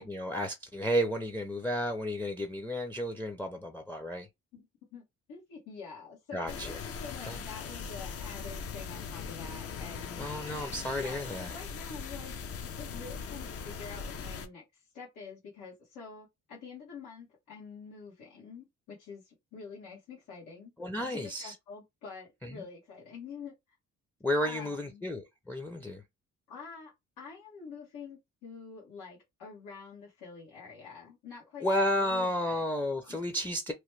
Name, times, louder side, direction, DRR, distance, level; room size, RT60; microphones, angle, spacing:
voice 1, 0.0-4.3 6.3-6.8 7.2-7.4 10.2-11.5 20.8-21.5 22.4-22.6 24.2-26.0 31.6-33.7, equal, 5° left, 0.5 m, -32 dB
voice 2, 4.5-10.3 11.0-12.3 12.6-20.7 21.0-23.5 24.4-25.0 26.5-32.6 33.0-33.2, left 5 dB, 90° left, 1.3 m, -47 dB
sound 1, 6.5-14.5, left 6 dB, 50° left, 0.6 m, -40 dB
3.0 x 2.2 x 3.2 m
cardioid pair, 90°, 30 cm